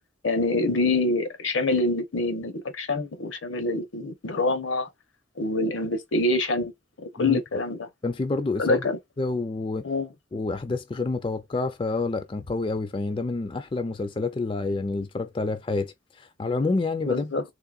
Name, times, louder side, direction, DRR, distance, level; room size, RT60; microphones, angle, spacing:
voice 1, 0.2-4.9 5.4-6.7 7.0-7.8 8.6-9.0 9.8-10.1 17.1-17.4, left 2 dB, 75° left, 0.8 m, -25 dB
voice 2, 8.0-8.8 9.2-9.9 10.3-17.3, left 3 dB, 25° left, 0.3 m, -28 dB
3.7 x 3.1 x 2.3 m
head